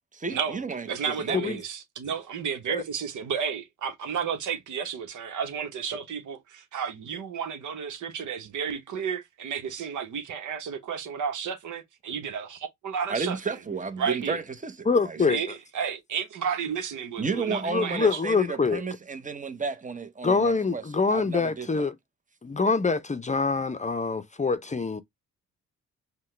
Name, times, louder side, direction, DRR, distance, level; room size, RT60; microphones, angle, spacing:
voice 1, 0.1-1.6 13.1-15.2 17.2-21.9, right 4 dB, 25° right, 0.9 m, -33 dB
voice 2, 0.9-13.4 14.0-14.4 15.3-18.2, right 7 dB, 70° right, 1.0 m, -32 dB
voice 3, 14.9-15.4 17.5-18.8 20.2-22.0 22.4-25.0, left 4 dB, 25° left, 0.6 m, -25 dB
5.5 x 2.3 x 3.2 m
supercardioid pair, 60°, 31 cm